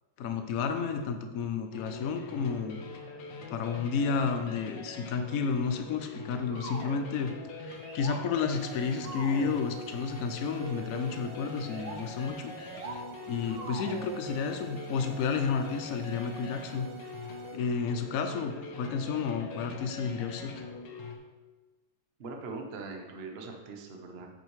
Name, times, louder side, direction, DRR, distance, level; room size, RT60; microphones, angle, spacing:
voice 1, 0.2-2.8 3.5-7.3 7.7-12.5 12.9-16.9 17.5-20.5, left 5 dB, 90° left, 6 dB, 0.7 m, -31 dB
sound 1, 1.7-21.2, left 4 dB, 65° left, 1.6 m, -44 dB
sound 2, 6.5-7.0 7.6-8.2 9.0-9.6 10.6-11.0 11.5-12.0 12.5-13.0 13.5-14.3, right 3 dB, 65° right, 1.7 m, -42 dB
sound 3, 8.6-17.6, right 10 dB, 85° right, 2.0 m, -50 dB
voice 2, 22.2-24.3, right 3 dB, 45° right, 2 dB, 0.8 m, -41 dB
8.9 x 8.1 x 3.2 m, 1.3 s
omnidirectional pair, 2.3 m